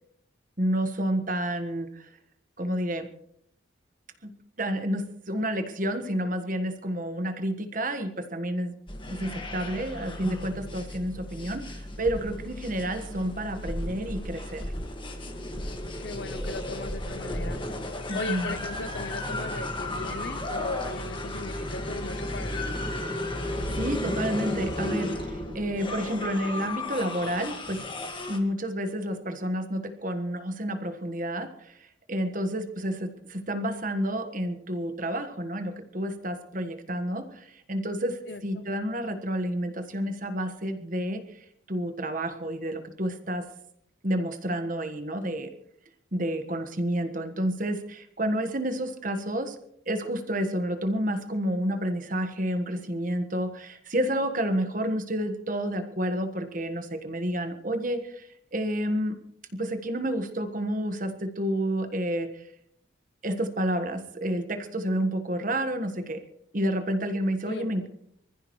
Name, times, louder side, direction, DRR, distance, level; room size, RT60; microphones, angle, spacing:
voice 1, 0.6-2.0 2.6-3.1 4.2-4.3 4.6-8.7 9.1-14.6 18.1-18.5 23.3-23.4 23.7-27.8 28.3-31.7 32.1-41.2 41.7-43.5 44.0-45.5 46.1-49.5 49.9-58.2 58.5-59.1 59.5-62.3 63.2-66.2 66.5-67.9, right 1 dB, 40° right, 8 dB, 1.5 m, -30 dB
sound 1, 8.9-28.4, left 1 dB, 25° left, 1.8 m, -34 dB
voice 2, 16.0-17.6 18.1-22.7 38.3-38.7 67.5-67.9, left 3 dB, 60° left, 13 dB, 0.7 m, -38 dB
25.0 x 15.0 x 3.2 m, 0.73 s
head